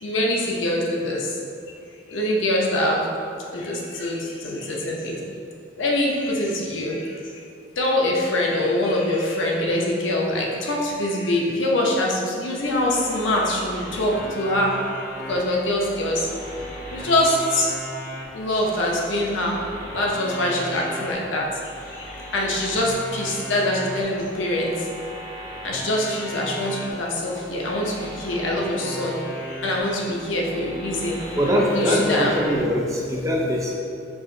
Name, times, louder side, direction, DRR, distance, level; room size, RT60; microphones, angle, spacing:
voice 1, 0.0-1.2 2.1-3.0 3.5-4.2 4.4-5.2 5.8-7.0 7.8-14.7 15.3-16.2 16.9-17.7 18.3-19.6 19.9-21.4 22.3-24.7 25.6-29.1 29.6-31.2 31.7-32.3, left 1 dB, 85° left, -2 dB, 0.7 m, -24 dB
sound 1, 12.6-32.6, equal, 45° left, 0.8 m, -36 dB
voice 2, 31.4-33.8, equal, 15° right, -2 dB, 0.5 m, -22 dB
4.9 x 2.5 x 3.8 m, 2.4 s
head